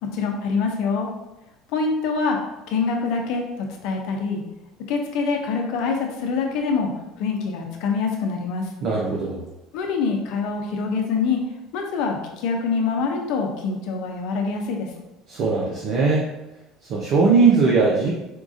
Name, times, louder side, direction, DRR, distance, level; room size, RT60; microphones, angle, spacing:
voice 1, 0.0-1.1 1.7-2.4 2.7-4.4 4.9-6.9 7.2-8.7 9.7-11.4 11.7-14.9, left 4 dB, 70° left, 2 dB, 0.6 m, -25 dB
voice 2, 8.8-9.4 15.3-16.2 16.9-18.1, right 4 dB, 65° right, -3 dB, 0.6 m, -19 dB
4.5 x 2.4 x 2.6 m, 0.98 s
supercardioid pair, 90°, 0 cm